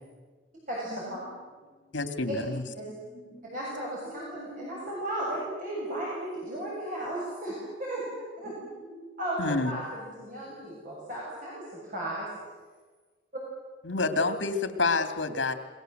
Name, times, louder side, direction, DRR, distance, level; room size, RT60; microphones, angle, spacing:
voice 1, 0.9-2.3 2.6-4.3 4.5-5.0 8.4-9.0 9.7-9.8 10.4-10.8, left 1 dB, 10° left, -2 dB, 5.6 m, -51 dB
voice 2, 1.9-2.6 9.4-9.8 13.8-15.5, left 3 dB, 70° left, 9 dB, 2.6 m, -28 dB
voice 3, 3.5-8.1 8.4-8.5 9.2-12.3, right 1 dB, 45° right, -5 dB, 7.6 m, -35 dB
27.5 x 22.5 x 7.9 m, 1.4 s
head